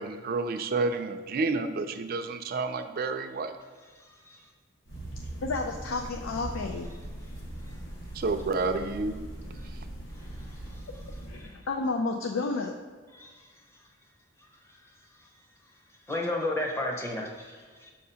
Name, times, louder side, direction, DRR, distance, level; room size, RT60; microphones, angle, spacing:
voice 1, 0.0-3.5 8.1-9.3 9.7-9.8, right 3 dB, 50° right, 8 dB, 0.4 m, -30 dB
sound 1, 4.9-11.6, right 1 dB, 65° left, 1.3 m, -40 dB
voice 2, 5.4-6.9 11.3-12.7, left 3 dB, 85° left, 3 dB, 0.4 m, -31 dB
voice 3, 13.1-13.5 16.1-17.9, left 1 dB, 15° left, -1 dB, 0.8 m, -32 dB
6.5 x 2.8 x 5.4 m, 1.5 s
head